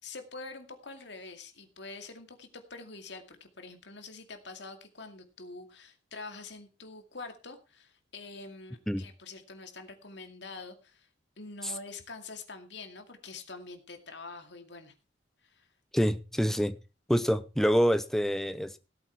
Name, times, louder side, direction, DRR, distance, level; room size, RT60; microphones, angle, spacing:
voice 1, 0.0-11.1 11.4-14.9 15.4-15.7, left 3 dB, 65° left, 2.3 m, -45 dB
voice 2, 15.9-16.8 17.1-18.8, equal, ahead, 0.7 m, -26 dB
17.5 x 8.3 x 4.5 m
head